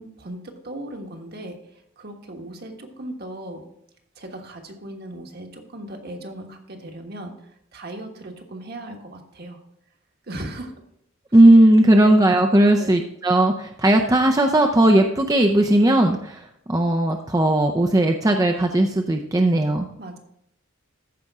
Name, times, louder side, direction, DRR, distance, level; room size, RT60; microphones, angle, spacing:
voice 1, 0.0-1.6 2.0-3.6 4.2-7.3 7.7-9.6 10.3-10.7 11.9-12.2 12.8-12.9 20.0-20.2, right 1 dB, 50° right, 3 dB, 1.4 m, -37 dB
voice 2, 11.3-16.4 16.7-19.9, right 1 dB, 20° right, 4 dB, 0.5 m, -17 dB
14.0 x 5.2 x 3.6 m, 0.75 s
head